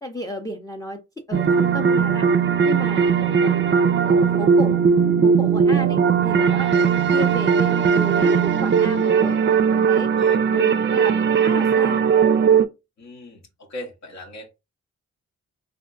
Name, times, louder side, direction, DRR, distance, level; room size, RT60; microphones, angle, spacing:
voice 1, 0.0-1.0 1.3-3.6 4.0-4.8 5.2-6.0 6.2-9.4 9.9-10.1 10.5-12.0, equal, 10° left, 0.5 m, -33 dB
sound 1, 1.3-12.7, right 6 dB, 40° right, 0.4 m, -18 dB
voice 2, 13.0-14.5, left 1 dB, 65° left, 0.9 m, -38 dB
3.5 x 2.5 x 2.4 m
cardioid pair, 55°, 30 cm